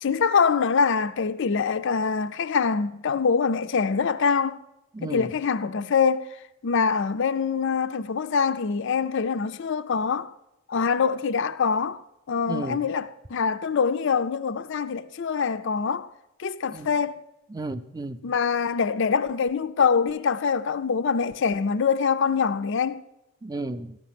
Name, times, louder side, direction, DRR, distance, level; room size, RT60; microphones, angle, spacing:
voice 1, 0.0-4.6 5.0-6.3 6.6-10.3 10.7-16.1 16.4-17.2 18.2-23.0, left 5 dB, 55° left, 0.4 m, -24 dB
voice 2, 4.9-5.3 12.5-12.8 16.7-16.9 17.5-18.2 23.4-24.0, right 2 dB, 15° right, 0.5 m, -33 dB
13.5 x 5.9 x 7.5 m
head